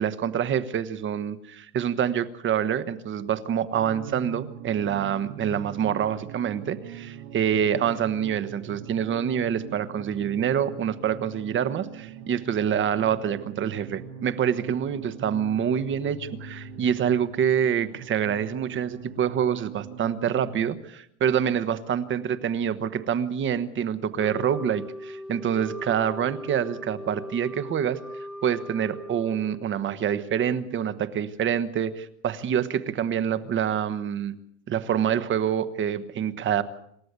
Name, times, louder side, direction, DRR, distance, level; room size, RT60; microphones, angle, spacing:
voice 1, 0.0-28.0 28.4-34.3 34.7-36.6, right 8 dB, 30° right, 12 dB, 1.3 m, -26 dB
sound 1, 3.7-20.7, right 8 dB, 60° right, 2.0 m, -42 dB
Wind instrument woodwind instrument, 24.2-29.8, equal, ahead, 1.3 m, -39 dB
27.5 x 13.0 x 8.2 m, 0.73 s
supercardioid pair, 140°, 42 cm